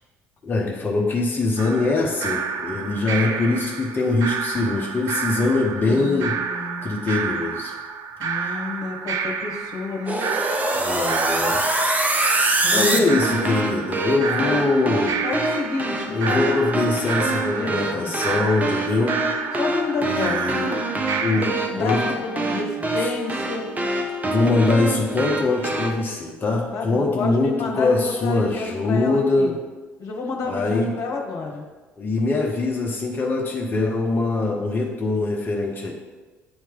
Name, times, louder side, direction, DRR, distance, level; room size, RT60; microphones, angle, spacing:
voice 1, 0.4-6.4 6.8-7.8 8.3-8.6 10.7-11.7 12.7-15.2 16.1-19.2 20.0-20.8 21.2-21.5 21.8-22.0 23.0-23.1 24.2-29.5 30.5-30.9 32.0-35.9, left 3 dB, 30° left, -2 dB, 0.9 m, -23 dB
sound 1, 1.6-21.5, right 6 dB, 50° right, 0.5 m, -30 dB
voice 2, 5.9-6.9 8.2-10.2 12.6-13.6 14.2-14.6 15.2-16.4 17.5-18.1 19.6-20.6 21.2-23.7 26.7-29.6 30.0-31.6, left 3 dB, 45° left, 0 dB, 1.3 m, -30 dB
sound 2, 10.1-26.0, right 2 dB, 20° right, 0.8 m, -25 dB
8.6 x 3.1 x 3.7 m, 1.3 s
figure-of-eight pair, 55°, 7 cm